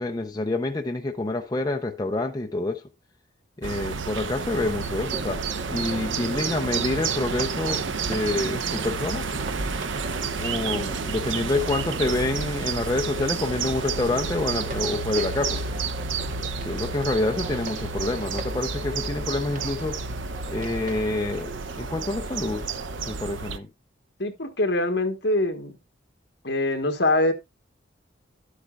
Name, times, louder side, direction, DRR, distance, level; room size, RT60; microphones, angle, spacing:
voice 1, 0.0-2.8 3.6-9.2 10.4-15.6 16.6-20.0 20.5-22.6 23.1-23.7, left 2 dB, 20° left, 0.6 m, -27 dB
sound 1, 3.6-23.6, right 5 dB, 80° right, 0.7 m, -30 dB
sound 2, 4.5-23.2, right 1 dB, 45° right, 1.0 m, -40 dB
voice 2, 24.2-25.7 26.4-27.3, left 2 dB, 60° left, 1.4 m, -23 dB
12.0 x 8.2 x 2.4 m
head